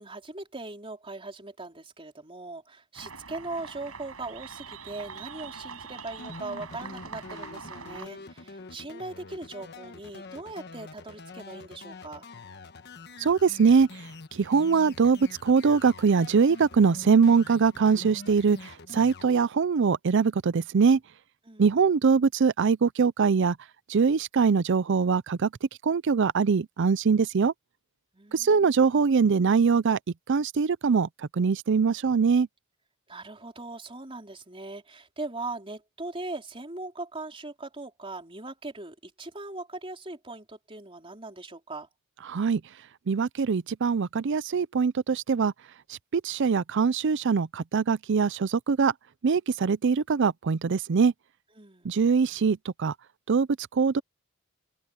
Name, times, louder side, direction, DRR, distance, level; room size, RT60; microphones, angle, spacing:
voice 1, 0.0-12.3 21.4-21.7 28.1-28.8 33.1-41.9 51.6-52.0, right 2 dB, 25° right, 4.2 m, -40 dB
sound 1, 2.9-8.1, right 5 dB, 85° right, 6.2 m, -43 dB
sound 2, 6.2-19.3, left 3 dB, 50° left, 1.3 m, -45 dB
voice 2, 13.2-13.9 14.3-18.6 18.9-21.0 21.6-23.6 23.9-25.5 25.8-27.5 28.3-30.0 30.3-32.5 42.3-42.6 43.1-45.5 46.1-48.9 49.2-51.1 51.8-52.9 53.3-53.5 53.8-54.0, right 5 dB, 60° right, 0.5 m, -22 dB
open air
head